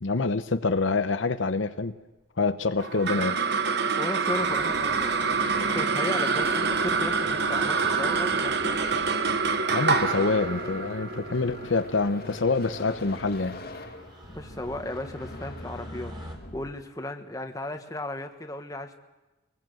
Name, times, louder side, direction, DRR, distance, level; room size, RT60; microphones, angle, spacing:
voice 1, 0.0-1.9 2.4-3.4 9.7-13.6, left 3 dB, 75° left, 9 dB, 0.9 m, -26 dB
sound 1, 2.2-2.7 3.6-4.1 4.9-5.0 5.2-5.3 5.6-5.7 6.0-6.3 6.7-7.0 7.2-16.4, left 1 dB, 25° right, 3.4 m, -49 dB
sound 2, 2.8-13.4, right 5 dB, 60° right, 1.1 m, -26 dB
voice 2, 4.0-8.8 14.3-16.1 16.5-19.0, left 1 dB, 20° left, 5 dB, 1.5 m, -35 dB
sound 3, 4.3-16.7, left 1 dB, 50° left, 2.3 m, -43 dB
25.0 x 20.0 x 7.8 m, 1.1 s
head